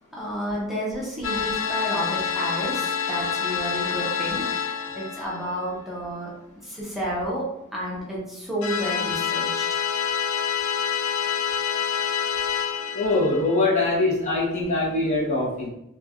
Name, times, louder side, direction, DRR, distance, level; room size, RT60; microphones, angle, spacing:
voice 1, 0.1-4.4 5.0-6.3 6.6-7.5 7.7-9.8, equal, ahead, -6 dB, 0.6 m, -30 dB
sound 1, 1.2-5.8 8.6-13.9, left 7 dB, 70° left, 0.3 m, -27 dB
voice 2, 12.9-15.7, left 2 dB, 35° left, -4 dB, 0.8 m, -23 dB
3.0 x 2.2 x 2.4 m, 0.84 s
head